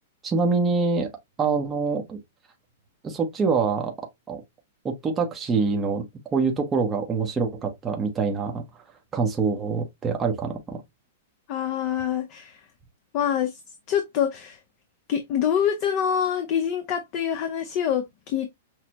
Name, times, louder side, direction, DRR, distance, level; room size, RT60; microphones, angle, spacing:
voice 1, 0.2-1.1 1.4-2.2 3.0-3.9 4.3-4.4 4.8-6.0 6.3-8.6 9.1-10.8, right 4 dB, 15° right, 0.7 m, -25 dB
voice 2, 11.5-12.6 13.1-13.6 13.9-14.6 15.1-18.5, left 9 dB, 35° left, 0.7 m, -25 dB
6.1 x 2.1 x 2.8 m
hypercardioid pair, 155°, 0 cm